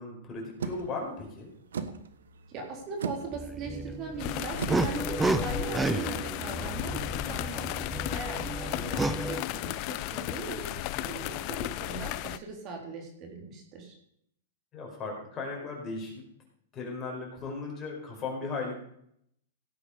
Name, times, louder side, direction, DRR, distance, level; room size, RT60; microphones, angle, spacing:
voice 1, 0.0-1.5 8.6-9.1 14.7-16.3 16.7-18.8, left 3 dB, 25° left, -1 dB, 4.8 m, -37 dB
sound 1, 0.6-6.2, right 6 dB, 85° right, 1.3 m, -40 dB
voice 2, 2.5-7.7 8.1-14.0, right 4 dB, 35° right, 2 dB, 3.6 m, -40 dB
sound 2, 3.3-9.4, right 2 dB, 10° right, 0.7 m, -32 dB
sound 3, 4.2-12.4, left 16 dB, 45° left, 0.6 m, -34 dB
16.5 x 8.6 x 5.0 m, 0.71 s
hypercardioid pair, 135°, 0 cm